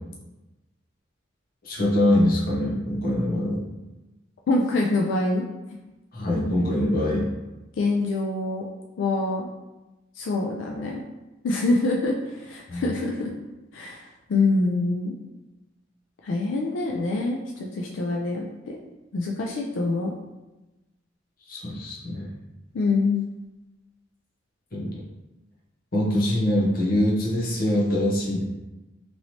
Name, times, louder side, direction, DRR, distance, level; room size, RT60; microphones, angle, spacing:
voice 1, 1.6-3.6 6.1-7.3 12.7-12.9 21.5-22.3 24.7-25.0 25.9-28.4, left 1 dB, 50° left, -4 dB, 0.8 m, -23 dB
voice 2, 4.5-5.4 7.8-8.6 9.0-9.5 10.2-11.0 11.4-13.3 13.7-15.1 16.2-18.8 19.1-20.1 22.7-23.2, left 2 dB, 85° left, -1 dB, 0.4 m, -25 dB
3.0 x 2.9 x 2.8 m, 1.1 s
head